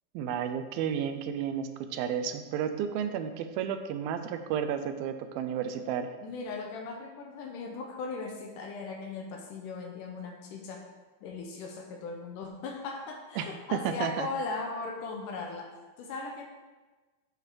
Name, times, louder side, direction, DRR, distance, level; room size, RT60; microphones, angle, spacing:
voice 1, 0.1-6.1 13.4-14.3, right 8 dB, 85° right, 9 dB, 2.4 m, -32 dB
voice 2, 6.2-10.9 11.2-15.7 16.0-16.4, left 4 dB, 75° left, 2 dB, 2.1 m, -38 dB
11.0 x 5.0 x 4.6 m, 1.3 s
omnidirectional pair, 4.3 m